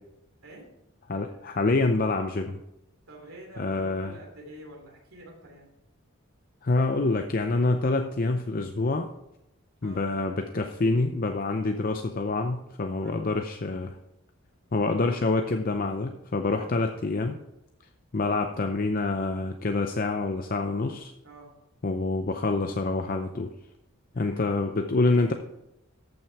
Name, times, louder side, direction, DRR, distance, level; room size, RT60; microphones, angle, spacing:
voice 1, 1.1-2.6 3.6-4.2 6.6-9.1 9.8-14.0 14.7-17.4 18.1-21.1 21.8-23.5 24.1-25.3, left 3 dB, 40° left, 5 dB, 0.5 m, -26 dB
voice 2, 3.1-5.7 9.8-10.1 13.0-13.2 21.2-21.5 24.1-24.8, right 1 dB, 75° right, 0 dB, 3.1 m, -47 dB
13.5 x 6.1 x 4.6 m, 0.88 s
head